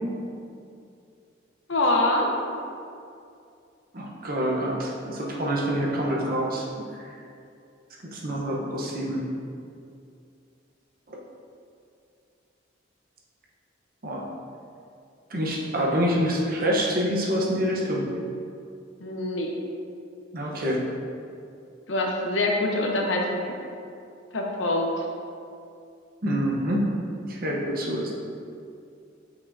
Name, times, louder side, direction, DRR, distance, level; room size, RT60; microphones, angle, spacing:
voice 1, 1.7-2.3 19.0-19.5 21.9-23.4 24.3-25.0, left 1 dB, 75° left, 0 dB, 0.8 m, -24 dB
voice 2, 3.9-7.1 8.0-9.2 11.1-11.2 14.0-14.3 15.3-18.0 20.3-20.8 26.2-26.9 27.3-28.1, equal, 45° right, -3 dB, 0.9 m, -26 dB
6.2 x 5.8 x 2.7 m, 2.5 s
head